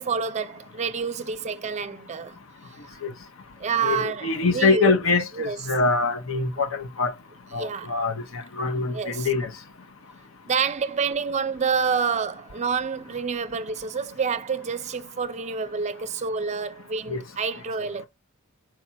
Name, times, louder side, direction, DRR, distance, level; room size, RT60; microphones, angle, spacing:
voice 1, 0.0-2.4 3.6-4.9 5.4-5.6 7.6-7.9 8.9-9.3 10.4-18.1, right 5 dB, 35° right, 0.5 m, -28 dB
voice 2, 3.8-7.1 7.5-9.5 17.1-17.2, left 4 dB, 70° left, 0.8 m, -24 dB
4.7 x 4.2 x 2.2 m
head